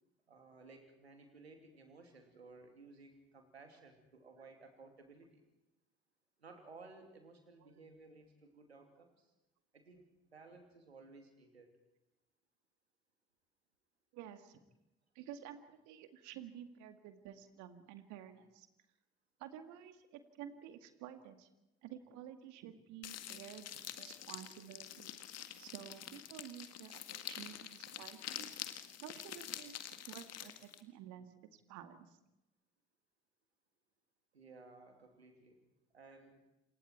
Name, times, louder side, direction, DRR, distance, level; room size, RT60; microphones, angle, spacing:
voice 1, 0.3-5.4 6.4-9.3 9.7-11.7 34.3-35.6 35.9-36.4, right 3 dB, 85° right, 5 dB, 2.8 m, -57 dB
voice 2, 14.1-14.6 15.1-18.7 19.4-21.5 21.8-25.2 25.6-28.5 29.0-32.2, right 10 dB, 65° right, 9 dB, 2.2 m, -52 dB
sound 1, 23.0-30.8, left 11 dB, 55° left, 1.8 m, -47 dB
28.0 x 25.5 x 4.6 m, 0.91 s
figure-of-eight pair, 45°, 31 cm